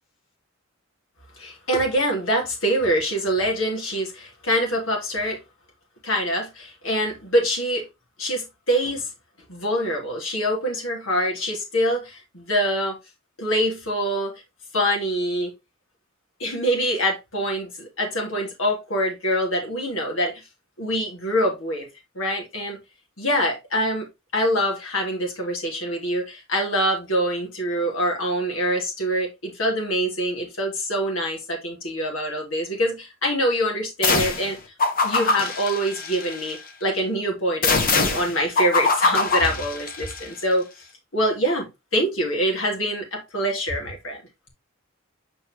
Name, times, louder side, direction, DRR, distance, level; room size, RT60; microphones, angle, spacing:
voice 1, 1.4-5.4 6.0-7.8 8.2-9.1 9.5-13.0 13.4-14.3 14.7-15.5 16.4-20.3 20.8-21.9 22.1-22.8 23.2-24.1 24.3-34.6 35.0-40.8 41.1-44.2, equal, 70° left, 3.2 m, -25 dB
sound 1, 34.0-34.5 34.8-36.5 37.6-40.2, left 3 dB, 45° left, 1.5 m, -23 dB
7.2 x 5.2 x 3.0 m
head